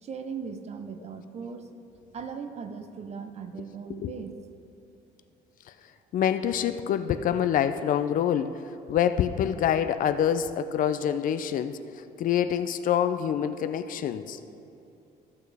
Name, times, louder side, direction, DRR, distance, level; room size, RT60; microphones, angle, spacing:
voice 1, 0.0-1.7 2.1-4.4, right 6 dB, 40° right, 9 dB, 0.7 m, -38 dB
voice 2, 6.1-8.5 8.9-11.8 12.2-14.4, left 9 dB, 55° left, 11 dB, 0.4 m, -26 dB
14.5 x 6.5 x 3.4 m, 2.8 s
cardioid pair, 110°, 17 cm